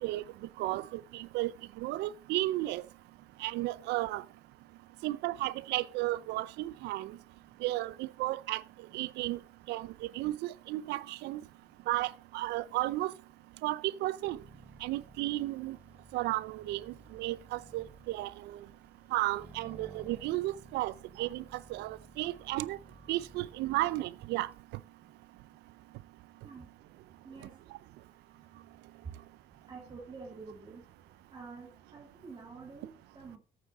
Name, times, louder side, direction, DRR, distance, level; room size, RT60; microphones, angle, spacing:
voice 1, 0.6-1.5 1.8-2.8 3.4-4.2 5.0-7.2 7.6-8.6 8.9-9.4 9.7-11.4 11.9-13.1 13.6-14.4 14.8-15.8 16.1-18.6 19.1-22.8 23.1-24.5, right 17 dB, 85° right, 0.5 m, -33 dB
Accelerating revving vroom, 14.3-24.6, right 2 dB, 10° right, 1.4 m, -56 dB
voice 2, 27.2-27.5 29.7-30.8 31.3-33.4, right 4 dB, 25° right, 2.5 m, -48 dB
8.8 x 8.6 x 4.1 m
cardioid pair, 110°, 17 cm